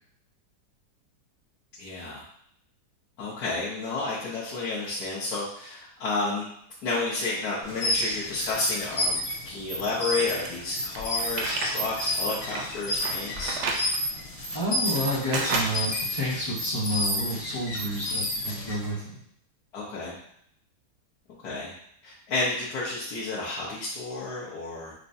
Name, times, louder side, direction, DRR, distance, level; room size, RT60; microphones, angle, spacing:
voice 1, 1.8-2.2 3.2-6.5 6.8-9.2 9.4-13.6 19.7-20.2 21.4-21.7 22.0-24.9, left 3 dB, 65° left, -8 dB, 1.3 m, -31 dB
sound 1, 7.6-18.9, left 1 dB, 85° left, 1.7 m, -31 dB
sound 2, 10.2-11.7 12.1-13.9 14.5-16.0, right 3 dB, 70° right, 0.6 m, -32 dB
voice 2, 14.5-19.2, equal, 25° left, -8 dB, 0.4 m, -30 dB
5.8 x 2.1 x 2.6 m, 0.69 s
omnidirectional pair, 1.8 m